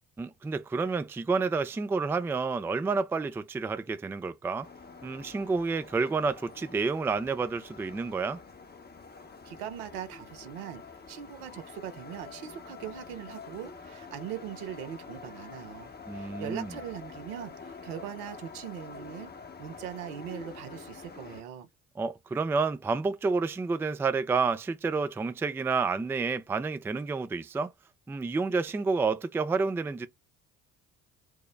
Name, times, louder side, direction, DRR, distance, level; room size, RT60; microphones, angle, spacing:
voice 1, 0.2-4.7 5.0-8.4 16.1-16.7 22.0-27.7 28.1-30.1, right 4 dB, 5° right, 0.4 m, -29 dB
sound 1, 4.6-21.4, left 4 dB, 20° left, 0.8 m, -47 dB
voice 2, 9.4-19.3 19.6-21.7, right 10 dB, 80° right, 0.8 m, -41 dB
4.6 x 2.1 x 3.3 m
hypercardioid pair, 55°, 45 cm